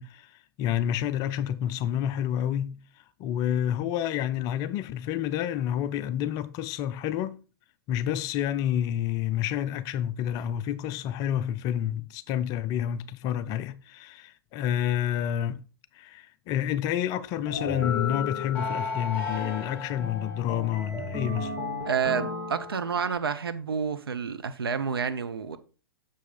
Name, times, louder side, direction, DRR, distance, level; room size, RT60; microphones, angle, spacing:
voice 1, 0.0-2.8 3.2-7.4 7.9-15.6 15.9-21.6, left 10 dB, 30° left, 0.4 m, -29 dB
sound 1, 17.5-23.2, left 4 dB, 10° left, 2.4 m, -33 dB
voice 2, 21.9-25.6, right 6 dB, 75° right, 0.8 m, -29 dB
6.8 x 5.2 x 3.8 m
figure-of-eight pair, 105°, 13 cm